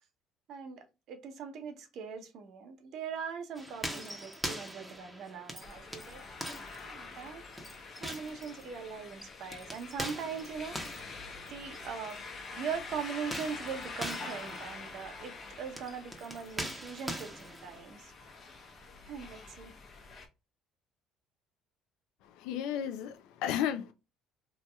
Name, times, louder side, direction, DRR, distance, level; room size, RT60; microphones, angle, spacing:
voice 1, 0.5-6.5 6.8-7.7 8.0-11.0 11.5-12.2 12.5-18.1 19.0-19.7, right 6 dB, 65° right, 0.7 m, -41 dB
sound 1, 3.6-12.2 13.2-17.8, equal, 5° right, 0.8 m, -43 dB
sound 2, 5.6-20.3, left 4 dB, 45° left, 1.0 m, -46 dB
voice 2, 22.2-23.9, left 10 dB, 75° left, 0.5 m, -33 dB
3.0 x 2.8 x 2.2 m
supercardioid pair, 70°, 0 cm